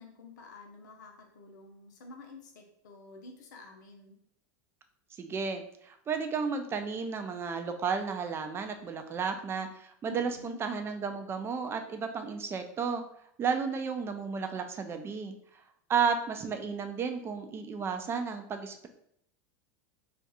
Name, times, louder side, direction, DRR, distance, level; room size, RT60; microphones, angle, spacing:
voice 1, 0.0-4.2 10.1-10.6, left 1 dB, 85° left, 3 dB, 0.8 m, -49 dB
voice 2, 5.2-13.0 13.4-15.3 15.9-18.9, right 6 dB, 25° right, 7 dB, 0.5 m, -33 dB
2.5 x 2.4 x 4.1 m, 0.71 s
supercardioid pair, 115°, 9 cm